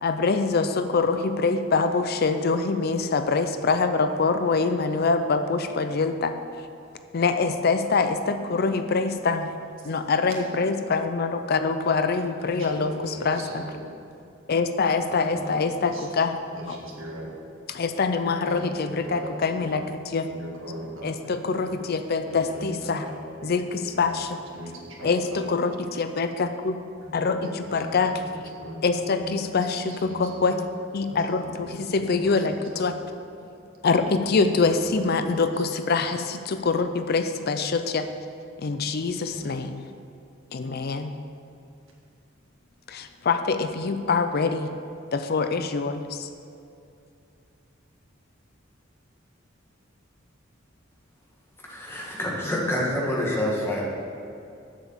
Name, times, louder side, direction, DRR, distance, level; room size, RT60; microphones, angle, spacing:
voice 1, 0.0-6.3 7.1-9.5 9.8-13.6 14.5-16.3 16.7-16.8 17.7-20.3 21.0-23.1 23.4-24.4 25.0-26.7 27.1-28.1 28.8-30.6 30.9-32.9 33.8-38.1 38.6-39.8 40.5-41.1 42.9-44.7 45.1-46.3, left 4 dB, 50° left, 9 dB, 0.5 m, -25 dB
voice 2, 12.4-13.8 15.3-16.0 16.5-17.3 18.4-19.8 20.3-21.4 21.7-21.8 22.3-23.5 23.8-24.0 24.5-25.5 27.0-27.9 28.3-30.5 31.1-33.0 33.9-34.0 34.3-35.3 39.3-39.6, equal, 85° right, -2 dB, 1.9 m, -39 dB
voice 3, 51.7-53.8, left 1 dB, 15° left, -4 dB, 1.8 m, -27 dB
7.5 x 7.0 x 7.2 m, 2.6 s
head